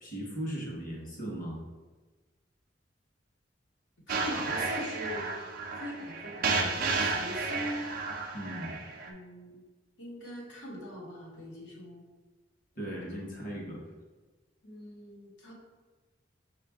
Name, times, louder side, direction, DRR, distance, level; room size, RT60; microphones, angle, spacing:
voice 1, 0.0-1.6 8.3-8.8 12.7-13.8, right 1 dB, 50° left, -2 dB, 1.1 m, -38 dB
voice 2, 4.1-5.3 5.8-7.8 9.0-9.6 10.0-12.0 14.6-15.5, equal, 85° left, -3 dB, 1.2 m, -41 dB
sound 1, 4.1-9.1, right 3 dB, 50° right, 0.5 m, -32 dB
5.3 x 2.5 x 3.5 m, 1.3 s
head